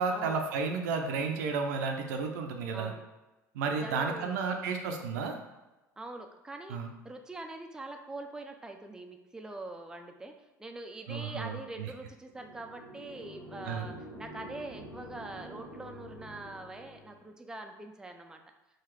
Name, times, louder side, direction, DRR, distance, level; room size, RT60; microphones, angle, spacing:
voice 1, 0.0-2.9 3.5-5.3 6.7-6.9 11.1-11.9 13.6-13.9, right 4 dB, 75° right, 3 dB, 0.6 m, -32 dB
voice 2, 2.7-3.0 3.8-4.3 6.0-6.8 7.0-10.3 10.6-18.4, right 2 dB, 5° right, 4 dB, 0.4 m, -43 dB
sound 1, 12.3-17.2, equal, 90° left, 1.1 m, -47 dB
3.9 x 2.4 x 4.5 m, 1.0 s
hypercardioid pair, 70°, 9 cm